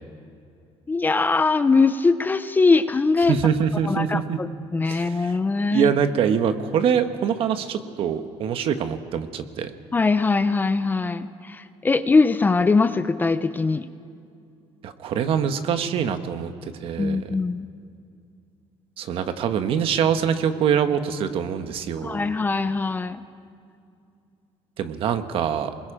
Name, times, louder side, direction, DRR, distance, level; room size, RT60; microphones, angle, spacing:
voice 1, 0.9-3.4 3.9-5.9 9.9-13.9 17.0-17.7 22.0-23.2, left 4 dB, 15° left, 12 dB, 0.6 m, -21 dB
voice 2, 3.3-4.4 4.8-5.4 5.7-9.7 14.8-17.2 19.0-22.2 24.8-25.7, right 8 dB, 55° right, 9 dB, 1.2 m, -24 dB
28.5 x 21.5 x 5.0 m, 2.5 s
cardioid pair, 150°, 11 cm